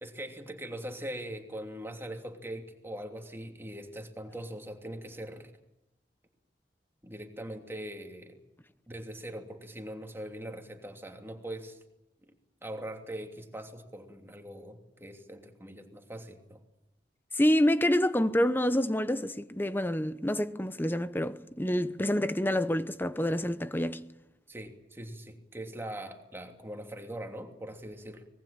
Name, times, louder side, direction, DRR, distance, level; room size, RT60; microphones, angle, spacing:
voice 1, 0.0-5.5 7.0-8.4 8.9-11.8 12.6-16.6 24.5-28.3, right 1 dB, 15° right, 3.0 m, -41 dB
voice 2, 17.3-24.0, left 1 dB, 10° left, 0.9 m, -27 dB
25.0 x 20.5 x 9.0 m
head